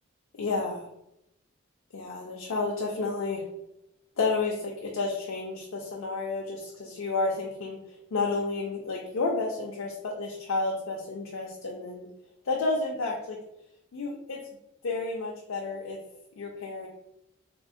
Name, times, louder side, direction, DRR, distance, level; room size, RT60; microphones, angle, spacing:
voice 1, 0.4-0.8 1.9-3.4 4.2-7.8 8.1-12.1 12.4-13.4 13.9-14.4 14.8-16.0 16.4-16.9, left 3 dB, 75° left, -2 dB, 0.4 m, -31 dB
3.6 x 2.0 x 2.5 m, 0.83 s
head